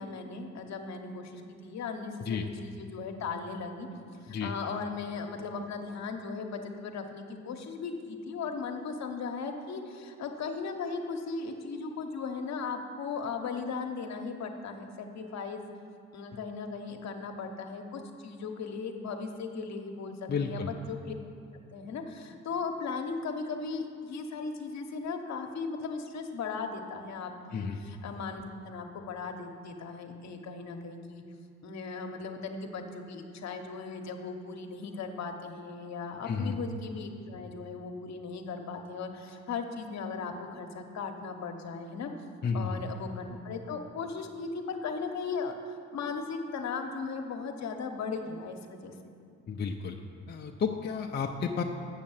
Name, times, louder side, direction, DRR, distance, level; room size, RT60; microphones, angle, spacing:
voice 1, 0.0-3.9 4.2-15.7 16.1-21.1 21.7-31.2 31.6-42.1 42.5-45.6 45.9-48.9, left 4 dB, 65° left, 4 dB, 1.0 m, -37 dB
voice 2, 20.3-20.7 27.5-27.8 36.3-36.6 42.4-42.7 49.5-50.0 50.3-51.6, left 5 dB, 35° left, 2 dB, 0.5 m, -32 dB
7.4 x 6.5 x 7.2 m, 2.4 s
cardioid pair, 90°, 30 cm